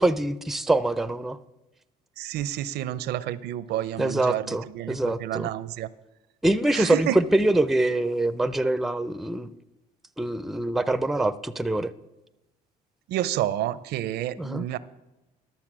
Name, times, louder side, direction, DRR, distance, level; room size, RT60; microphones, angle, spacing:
voice 1, 0.0-1.4 4.0-5.5 6.4-9.5 10.2-11.9 14.4-14.6, right 2 dB, ahead, 13 dB, 0.4 m, -24 dB
voice 2, 2.2-5.9 6.7-7.2 13.1-14.8, right 13 dB, 75° right, 17 dB, 0.5 m, -30 dB
12.0 x 7.0 x 6.1 m, 0.98 s
cardioid pair, 110°, 17 cm